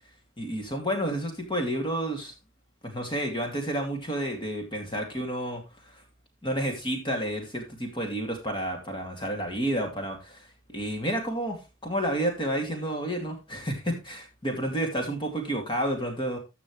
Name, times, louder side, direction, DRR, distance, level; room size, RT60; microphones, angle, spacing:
voice 1, 0.4-2.3 2.8-5.6 6.4-16.4, right 1 dB, 25° left, 3 dB, 2.5 m, -30 dB
14.5 x 6.1 x 3.2 m, 0.26 s
head